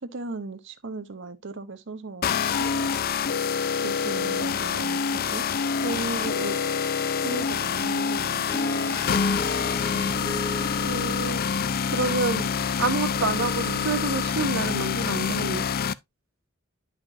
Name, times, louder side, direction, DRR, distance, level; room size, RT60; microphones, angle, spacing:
voice 1, 0.0-2.4 3.8-5.5 7.1-9.2 9.8-10.4 10.8-11.3 13.6-14.0, right 3 dB, 65° right, 1.0 m, -38 dB
sound 1, 2.2-15.9, left 6 dB, 45° left, 0.4 m, -26 dB
voice 2, 5.8-6.6 10.9-11.4 11.9-12.5 12.8-15.7, right 3 dB, 90° right, 1.7 m, -28 dB
Harp, 8.5-13.7, left 2 dB, 15° left, 0.9 m, -38 dB
10.5 x 5.9 x 2.6 m
head